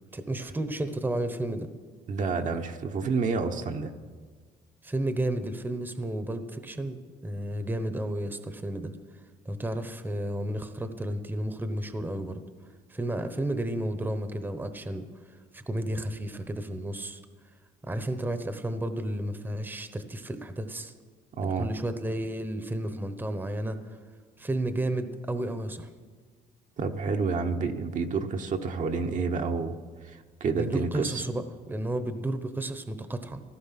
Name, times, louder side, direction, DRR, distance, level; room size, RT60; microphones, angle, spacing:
voice 1, 0.1-1.7 4.8-8.9 9.4-12.4 12.9-15.1 15.5-17.2 17.8-20.9 21.4-23.8 24.4-25.9 30.5-33.4, right 1 dB, 10° right, 10 dB, 1.0 m, -32 dB
voice 2, 2.1-3.9 21.4-21.7 26.8-29.8 30.0-31.2, right 4 dB, 50° right, 5 dB, 1.0 m, -29 dB
15.0 x 12.5 x 5.9 m, 1.5 s
cardioid pair, 110°, 17 cm